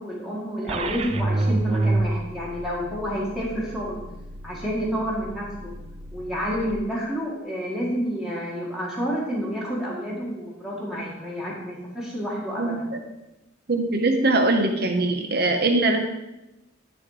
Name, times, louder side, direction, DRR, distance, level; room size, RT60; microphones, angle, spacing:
voice 1, 0.0-4.0 4.4-5.5 6.1-12.9, equal, ahead, -6 dB, 1.6 m, -29 dB
sound 1, 0.7-6.7, right 2 dB, 30° right, 0.4 m, -29 dB
voice 2, 13.7-16.0, right 2 dB, 50° right, 4 dB, 1.0 m, -21 dB
10.5 x 4.3 x 4.9 m, 0.97 s
head